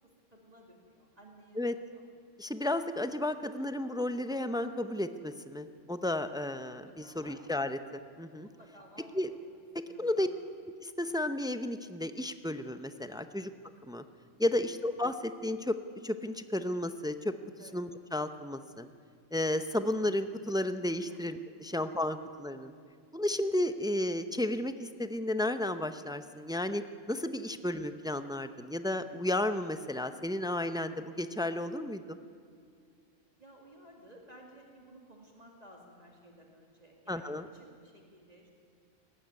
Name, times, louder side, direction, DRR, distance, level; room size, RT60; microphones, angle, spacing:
voice 1, 0.3-2.0 7.0-7.4 8.4-9.4 9.7-10.3 17.6-17.8 21.1-21.2 33.4-38.5, right 1 dB, 30° right, 0 dB, 2.4 m, -56 dB
voice 2, 2.4-8.5 9.1-9.3 10.0-10.3 10.8-13.5 13.9-14.0 14.4-15.8 16.0-17.3 17.7-18.9 19.3-22.7 23.1-26.8 27.1-32.2 37.1-37.4, left 1 dB, 5° right, 10 dB, 0.4 m, -33 dB
19.0 x 14.5 x 9.6 m, 2.3 s
omnidirectional pair, 1.3 m